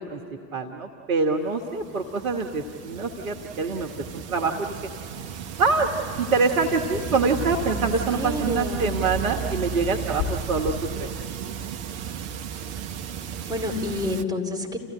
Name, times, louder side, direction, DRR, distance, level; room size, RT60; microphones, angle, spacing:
voice 1, 0.5-4.7 5.6-5.9 6.2-11.1, right 4 dB, 75° right, 2 dB, 1.3 m, -25 dB
sound 1, 1.5-14.2, right 9 dB, 55° right, 1.0 m, -34 dB
sound 2, 2.3-2.4 2.7-2.8 3.1-3.3 3.6-3.7 4.2-12.6, left 8 dB, 30° left, 5.5 m, -38 dB
voice 2, 7.7-8.9 9.4-9.5 13.5-14.8, left 2 dB, 10° right, -1 dB, 4.4 m, -29 dB
29.5 x 15.5 x 9.6 m, 2.7 s
figure-of-eight pair, 60°, 42 cm